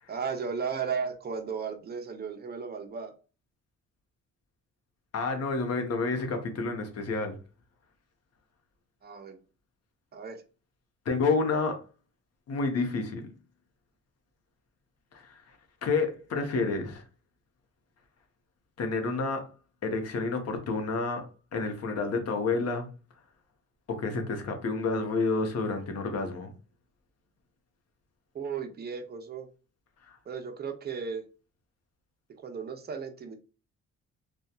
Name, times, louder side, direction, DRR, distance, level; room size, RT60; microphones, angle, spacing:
voice 1, 0.1-3.1 9.0-9.4 10.1-10.4 28.3-29.5 30.3-31.2 32.4-33.3, right 6 dB, 35° right, 6 dB, 0.6 m, -35 dB
voice 2, 5.1-7.4 11.0-11.7 12.5-13.3 15.1-17.0 18.8-19.5 19.8-21.2 21.5-22.9 23.9-26.5 30.0-30.2, left 3 dB, 55° left, 5 dB, 0.8 m, -29 dB
2.8 x 2.3 x 2.2 m, 0.35 s
cardioid pair, 90°, 30 cm